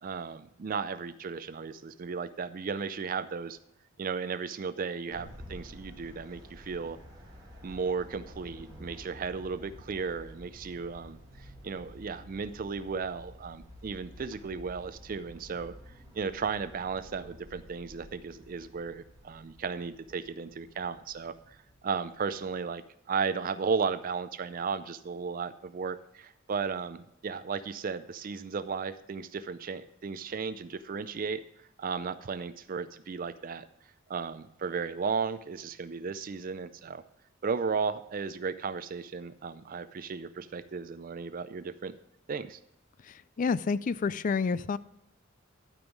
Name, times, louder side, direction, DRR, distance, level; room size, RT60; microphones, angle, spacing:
voice 1, 0.0-3.6 4.0-7.0 7.6-15.7 16.2-21.6 21.8-31.4 31.8-33.7 34.1-37.0 37.4-42.0 42.3-42.6, right 5 dB, 40° right, 13 dB, 0.4 m, -35 dB
sound 1, 5.1-22.5, left 1 dB, 20° right, 2.2 m, -51 dB
voice 2, 43.0-44.8, left 5 dB, 40° left, 17 dB, 0.3 m, -29 dB
12.0 x 5.4 x 6.0 m, 0.82 s
head